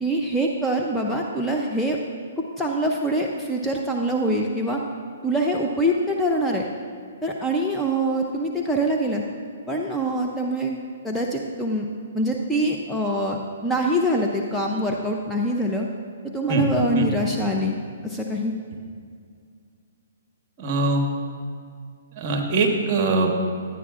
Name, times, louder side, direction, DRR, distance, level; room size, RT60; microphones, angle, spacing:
voice 1, 0.0-2.0 2.4-4.8 5.2-6.6 7.2-9.2 9.7-10.8 11.0-11.9 12.1-15.9 16.2-17.8 18.0-18.5, right 1 dB, 5° left, -1 dB, 0.5 m, -24 dB
voice 2, 20.6-21.0 22.2-23.3, right 3 dB, 35° right, 2 dB, 1.2 m, -22 dB
11.5 x 9.2 x 2.4 m, 2.2 s
hypercardioid pair, 140°, 0 cm